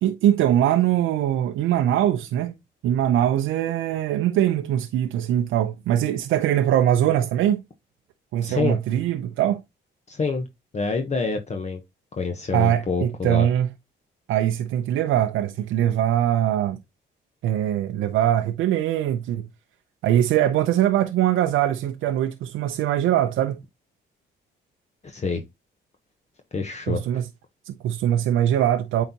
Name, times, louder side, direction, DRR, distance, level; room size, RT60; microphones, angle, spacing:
voice 1, 0.0-2.5 2.8-7.6 8.3-9.6 12.5-13.7 14.3-16.8 17.4-19.5 20.0-23.6 26.9-27.3 27.7-29.0, right 11 dB, 85° right, 0.6 m, -22 dB
voice 2, 8.4-8.8 10.1-10.5 10.7-11.8 12.1-13.5 25.0-25.4 26.5-27.0, left 4 dB, 35° left, 1.0 m, -27 dB
8.6 x 4.0 x 2.8 m
cardioid pair, 90°, 20 cm